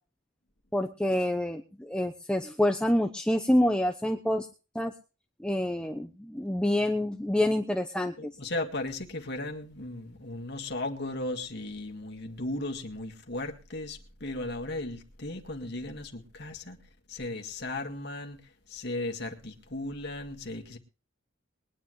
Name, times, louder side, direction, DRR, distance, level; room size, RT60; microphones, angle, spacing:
voice 1, 0.7-4.5 4.7-4.9 5.4-8.3, left 1 dB, 5° left, 0.8 m, -27 dB
voice 2, 8.2-16.8 17.1-20.8, left 2 dB, 50° left, 2.0 m, -36 dB
22.0 x 10.0 x 3.2 m
head